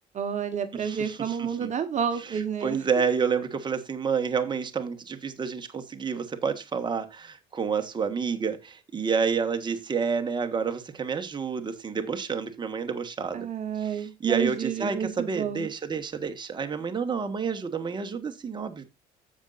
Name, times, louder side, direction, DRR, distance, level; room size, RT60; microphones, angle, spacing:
voice 1, 0.1-2.8 13.3-15.7, right 7 dB, 45° right, 1.3 m, -30 dB
voice 2, 0.8-1.1 1.6-1.7 2.6-13.5 14.2-18.8, right 6 dB, 25° right, 1.4 m, -29 dB
16.0 x 5.4 x 2.5 m
cardioid pair, 110°, 17 cm